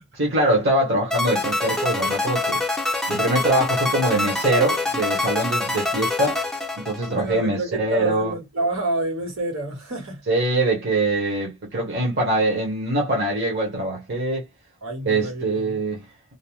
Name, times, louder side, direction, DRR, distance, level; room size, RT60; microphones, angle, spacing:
voice 1, 0.1-2.6 3.1-6.4 6.8-8.3 10.3-14.5 15.0-16.1, right 2 dB, 55° right, 0.9 m, -23 dB
sound 1, 1.1-7.4, left 2 dB, 5° left, 0.5 m, -25 dB
voice 2, 7.0-10.2 14.8-15.8, right 2 dB, 80° right, 1.4 m, -28 dB
2.6 x 2.0 x 3.0 m
head